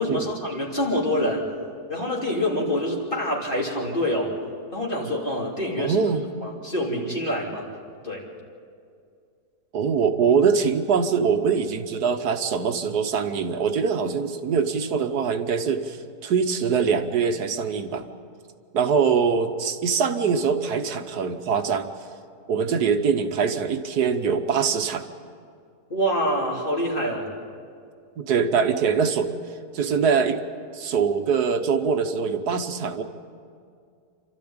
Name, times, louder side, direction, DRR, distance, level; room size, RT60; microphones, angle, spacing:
voice 1, 0.0-1.5 1.9-4.3 4.7-6.0 6.4-7.7 8.0-8.2 25.9-27.3, left 1 dB, 30° left, -2 dB, 3.4 m, -26 dB
voice 2, 5.8-6.3 9.7-16.0 16.2-18.1 18.7-21.9 22.5-25.0 28.2-29.4 29.7-30.4 30.7-33.0, right 6 dB, 80° right, 7 dB, 1.6 m, -23 dB
28.0 x 13.5 x 8.8 m, 2.3 s
omnidirectional pair, 1.7 m